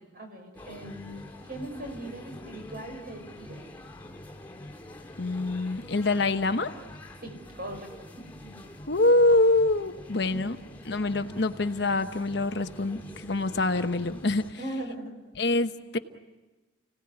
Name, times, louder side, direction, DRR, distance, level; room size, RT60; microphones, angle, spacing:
voice 1, 0.1-3.6 7.2-7.9 8.2-8.7 10.3-10.6 11.3-11.4 14.6-15.1, right 1 dB, 50° right, 4 dB, 5.6 m, -40 dB
sound 1, 0.5-14.5, left 1 dB, 10° left, 2.7 m, -46 dB
voice 2, 5.2-6.7 8.9-10.6 10.8-14.4 15.4-16.0, left 2 dB, 55° left, 8 dB, 1.1 m, -25 dB
30.0 x 18.0 x 9.8 m, 1.2 s
head